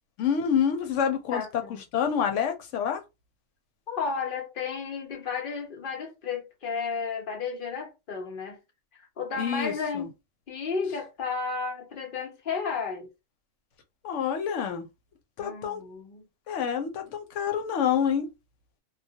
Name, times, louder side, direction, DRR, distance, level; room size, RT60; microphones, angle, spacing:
voice 1, 0.2-3.0 9.4-10.1 14.0-14.9 15.4-15.8 16.5-18.3, left 8 dB, 90° left, 1.0 m, -27 dB
voice 2, 1.3-1.8 3.9-8.6 9.2-10.1 10.5-13.1 15.4-16.2, left 5 dB, 50° left, 0.9 m, -33 dB
2.3 x 2.1 x 2.7 m
omnidirectional pair, 1.2 m